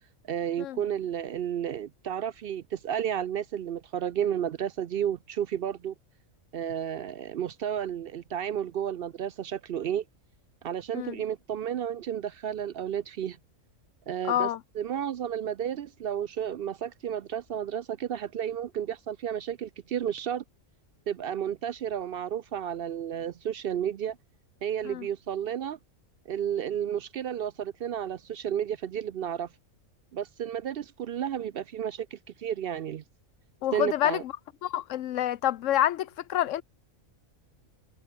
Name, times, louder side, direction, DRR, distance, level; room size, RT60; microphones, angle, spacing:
voice 1, 0.3-5.9 6.5-10.0 10.6-13.4 14.1-14.5 14.8-20.4 21.1-24.2 24.6-25.8 26.3-29.5 30.1-33.0 33.7-34.2, right 9 dB, 60° right, 0.6 m, -32 dB
voice 2, 14.3-14.6 24.8-25.1 33.6-34.3 34.6-36.6, left 12 dB, 70° left, 0.9 m, -27 dB
omnidirectional pair, 1.4 m